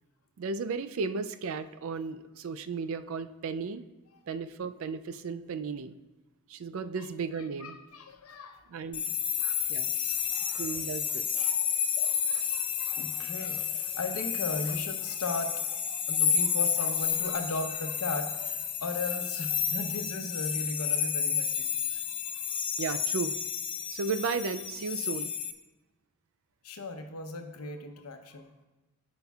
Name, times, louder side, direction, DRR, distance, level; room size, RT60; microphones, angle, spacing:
voice 1, 0.4-3.8 4.3-5.9 6.5-7.8 8.7-9.0 9.7-9.9 10.5-11.4 22.8-23.4 23.9-25.3, right 5 dB, 65° right, 11 dB, 0.4 m, -34 dB
voice 2, 7.0-8.6 9.3-10.8 11.0-21.7 21.9-22.0 22.3-22.6 26.6-28.5, left 2 dB, 90° left, 5 dB, 0.8 m, -38 dB
sound 1, 8.9-25.5, left 7 dB, 25° left, 0.4 m, -31 dB
13.5 x 5.2 x 2.3 m, 1.1 s
head